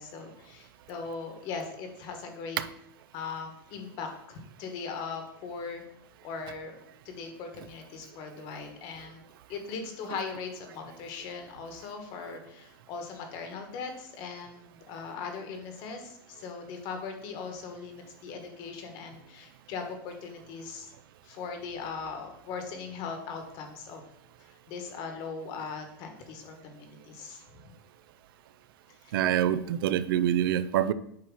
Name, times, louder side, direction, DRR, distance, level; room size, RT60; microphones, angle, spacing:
voice 1, 0.0-2.6 3.1-5.8 6.2-6.7 7.0-9.2 9.5-20.9 21.2-24.0 24.7-27.7 29.0-29.2, left 5 dB, 35° left, 5 dB, 1.3 m, -39 dB
voice 2, 29.1-30.9, right 11 dB, 65° right, 14 dB, 0.4 m, -26 dB
8.5 x 2.9 x 6.3 m, 0.76 s
supercardioid pair, 165°, 13 cm